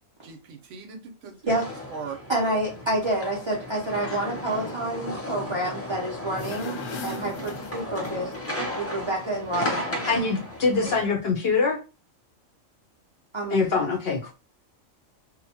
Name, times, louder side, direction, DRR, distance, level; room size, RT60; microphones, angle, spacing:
voice 1, 0.2-2.2 10.8-11.2, right 5 dB, 70° right, 0.9 m, -40 dB
sound 1, 1.5-11.0, left 1 dB, 20° left, 0.4 m, -34 dB
voice 2, 2.3-8.3 8.8-10.3 13.3-13.9, right 1 dB, 50° right, 0.3 m, -29 dB
sound 2, 6.3-8.4, left 3 dB, 80° left, 1.0 m, -40 dB
voice 3, 10.1-11.8 13.5-14.3, left 4 dB, 60° left, 0.7 m, -24 dB
2.8 x 2.1 x 2.7 m
omnidirectional pair, 1.4 m